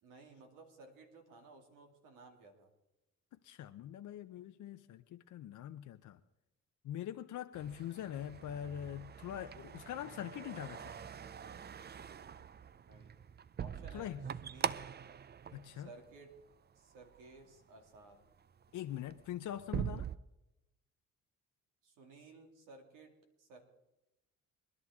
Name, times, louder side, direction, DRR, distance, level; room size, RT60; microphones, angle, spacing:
voice 1, 0.0-2.7 12.8-13.2 13.6-14.8 15.7-16.3 16.7-18.2 21.8-23.6, right 3 dB, 90° right, 3 dB, 2.6 m, -57 dB
voice 2, 3.4-6.2 6.8-10.9 13.9-14.2 15.5-15.9 18.7-20.1, left 11 dB, 75° left, 8 dB, 0.7 m, -43 dB
sound 1, 7.5-16.5 16.9-17.4 18.0-18.1 18.5-20.2, right 8 dB, 35° right, 0.5 m, -43 dB
23.5 x 11.0 x 3.6 m, 0.92 s
cardioid pair, 70°, 31 cm